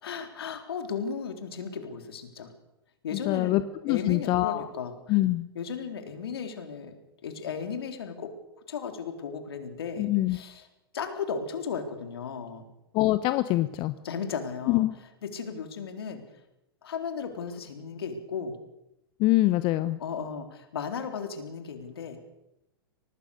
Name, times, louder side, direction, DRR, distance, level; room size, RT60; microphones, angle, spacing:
voice 1, 0.0-2.5 3.0-5.2 5.5-6.9 7.2-8.3 8.7-10.7 10.9-12.6 14.0-14.9 15.2-16.2 16.8-18.5 20.0-22.3, left 6 dB, 70° left, 7 dB, 3.9 m, -35 dB
voice 2, 3.1-4.7 5.1-5.5 10.0-10.4 12.9-13.9 14.7-14.9 19.2-20.0, left 17 dB, 40° left, 13 dB, 1.0 m, -24 dB
24.5 x 19.0 x 6.7 m, 0.88 s
hypercardioid pair, 110°, 13 cm